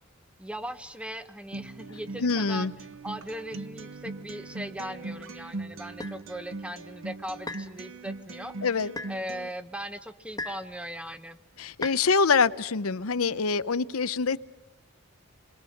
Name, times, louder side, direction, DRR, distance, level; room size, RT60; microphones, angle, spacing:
voice 1, 0.4-2.7 3.0-8.7 9.1-11.4, equal, 5° right, 11 dB, 1.0 m, -39 dB
Acoustic guitar, 1.5-9.5, right 3 dB, 65° right, 1.0 m, -40 dB
voice 2, 2.2-2.7 8.6-8.9 11.6-14.4, left 4 dB, 85° left, 15 dB, 0.8 m, -25 dB
sound 1, 6.0-6.2 7.5-7.7 9.0-9.2 10.4-10.7 11.8-12.0, left 2 dB, 15° left, 1.4 m, -36 dB
29.5 x 22.0 x 6.5 m, 1.0 s
head